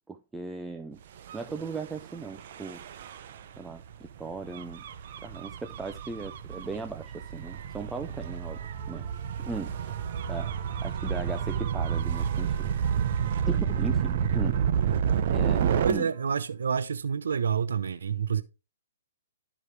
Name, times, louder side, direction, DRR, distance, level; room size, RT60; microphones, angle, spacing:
voice 1, 0.1-1.0 1.3-2.8 3.6-4.8 5.2-9.1 9.4-10.0 10.3-10.5 10.8-12.9 13.5-14.6 15.3-16.1, right 3 dB, 5° right, 0.4 m, -38 dB
Gull seagull / Waves surf / Siren, 1.2-15.9, right 8 dB, 50° right, 0.8 m, -30 dB
voice 2, 15.8-18.4, right 6 dB, 80° right, 0.7 m, -28 dB
12.5 x 4.9 x 3.3 m
hypercardioid pair, 145°, 0 cm